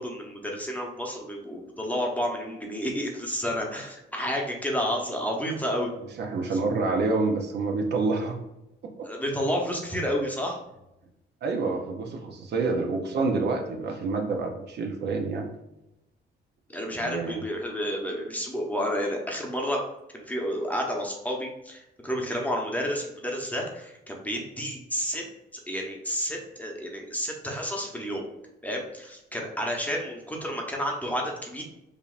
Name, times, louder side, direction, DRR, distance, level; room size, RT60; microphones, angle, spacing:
voice 1, 0.0-5.9 9.0-10.6 16.7-19.8 20.1-25.3 25.7-28.2 28.6-31.6, equal, 5° left, 0 dB, 0.9 m, -30 dB
voice 2, 6.2-8.4 9.0-9.1 11.4-15.5 16.9-17.4, right 3 dB, 60° right, 2 dB, 0.7 m, -27 dB
4.9 x 2.6 x 2.5 m, 0.89 s
cardioid pair, 90°, 20 cm